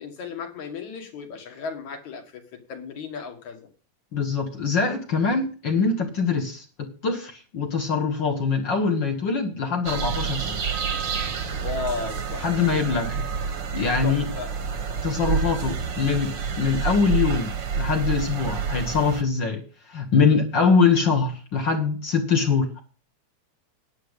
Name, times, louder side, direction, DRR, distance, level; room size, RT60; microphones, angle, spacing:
voice 1, 0.0-3.7 11.6-12.5 14.0-14.5, left 5 dB, 65° left, 4 dB, 3.1 m, -35 dB
voice 2, 4.1-10.6 12.4-13.2 13.7-14.3 15.0-17.5 17.8-19.6 19.9-22.8, left 5 dB, 45° left, 4 dB, 1.7 m, -23 dB
sound 1, 9.9-19.2, right 6 dB, 50° right, 1.5 m, -28 dB
10.5 x 7.0 x 8.1 m, 0.37 s
omnidirectional pair, 3.7 m